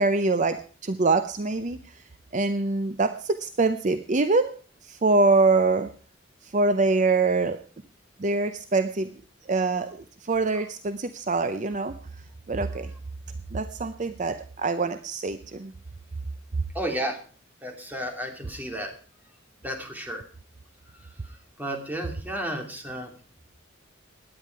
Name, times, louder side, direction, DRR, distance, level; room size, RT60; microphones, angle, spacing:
voice 1, 0.0-1.8 2.3-4.6 4.8-5.9 6.4-7.6 8.2-9.1 9.5-11.9 12.5-12.9 13.5-15.7, right 3 dB, 40° right, 10 dB, 0.6 m, -24 dB
voice 2, 16.7-17.2 17.6-18.9 19.6-20.2 21.2-23.1, right 1 dB, 10° right, 3 dB, 2.7 m, -32 dB
17.5 x 10.0 x 4.6 m, 0.41 s
head